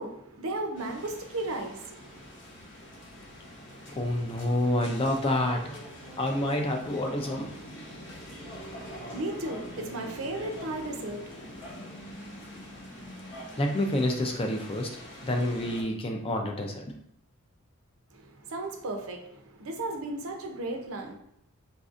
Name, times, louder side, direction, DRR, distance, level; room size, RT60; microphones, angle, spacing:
voice 1, 0.0-2.3 8.7-11.6 18.1-21.2, right 2 dB, 65° right, 4 dB, 0.6 m, -35 dB
sound 1, 0.7-15.8, equal, 55° left, 0.9 m, -44 dB
voice 2, 3.9-5.6 6.2-7.5 13.6-14.9 15.2-17.0, left 1 dB, 25° left, 2 dB, 0.4 m, -28 dB
4.1 x 2.6 x 2.4 m, 0.76 s
head